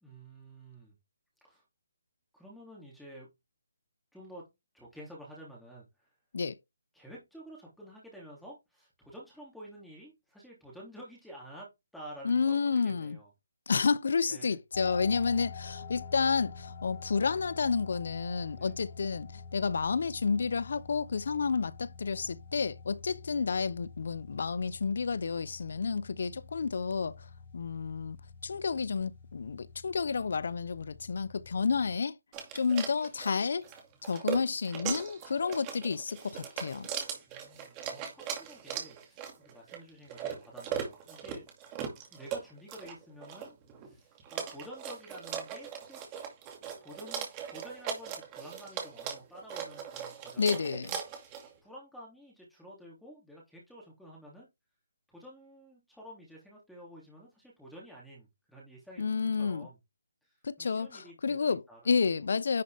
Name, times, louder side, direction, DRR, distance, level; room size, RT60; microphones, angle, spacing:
voice 1, 0.0-1.0 1.4-1.6 2.3-3.3 4.1-4.5 4.7-6.1 6.9-13.3 14.3-14.6 18.5-18.7 37.3-41.4 42.1-43.6 43.8-46.0 46.8-50.8 51.6-54.5 55.1-59.8 60.2-62.3, equal, ahead, 3.2 m, -50 dB
voice 2, 12.2-13.2 13.7-27.3 27.5-28.2 28.4-32.2 32.5-33.7 34.0-36.9 50.4-51.0 59.0-59.7 60.4-62.6, left 5 dB, 60° left, 0.8 m, -30 dB
sound 1, 14.7-32.0, left 5 dB, 45° left, 5.7 m, -47 dB
sound 2, 32.3-51.5, right 8 dB, 20° right, 2.3 m, -39 dB
10.5 x 5.1 x 3.5 m
hypercardioid pair, 160°, 0 cm